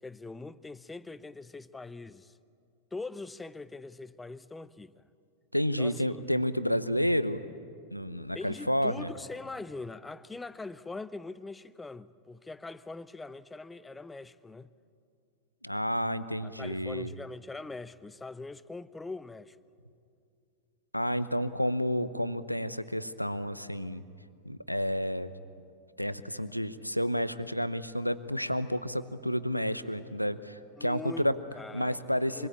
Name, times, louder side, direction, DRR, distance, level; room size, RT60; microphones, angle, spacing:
voice 1, 0.0-2.4 2.9-5.0 5.8-6.3 8.3-14.7 16.4-19.6 30.8-32.0 32.3-32.5, left 3 dB, 10° left, 0.7 m, -42 dB
voice 2, 5.5-7.4 7.9-9.1 15.6-17.1 20.9-24.0 24.4-25.3 26.0-31.4 31.7-32.5, equal, 90° left, 0.8 m, -30 dB
26.5 x 21.0 x 8.6 m
figure-of-eight pair, 90°, 0 cm